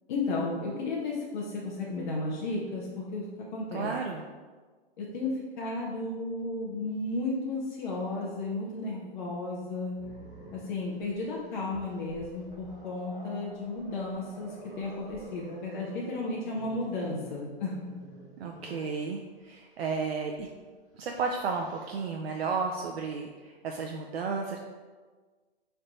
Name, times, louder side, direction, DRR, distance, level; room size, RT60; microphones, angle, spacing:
voice 1, 0.1-3.9 5.0-10.1 10.5-18.0, left 2 dB, 50° left, -3 dB, 0.7 m, -34 dB
voice 2, 3.7-4.2 18.4-20.5 20.9-24.6, right 5 dB, 80° right, 1 dB, 0.5 m, -33 dB
Growling, 9.9-19.0 20.3-20.5 20.9-22.1, right 1 dB, 10° right, 1.1 m, -50 dB
3.3 x 2.6 x 4.1 m, 1.4 s
hypercardioid pair, 125°, 31 cm